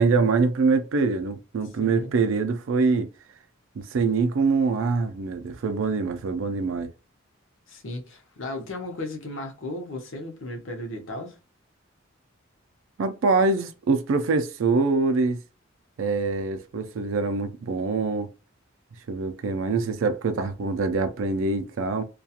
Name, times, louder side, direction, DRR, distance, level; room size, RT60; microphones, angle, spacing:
voice 1, 0.0-3.1 3.8-6.9 13.0-15.4 16.0-18.3 19.1-22.0, right 4 dB, 65° right, 0.4 m, -24 dB
voice 2, 1.8-2.2 7.7-11.4, left 1 dB, 65° left, 0.7 m, -35 dB
2.3 x 2.2 x 2.7 m
head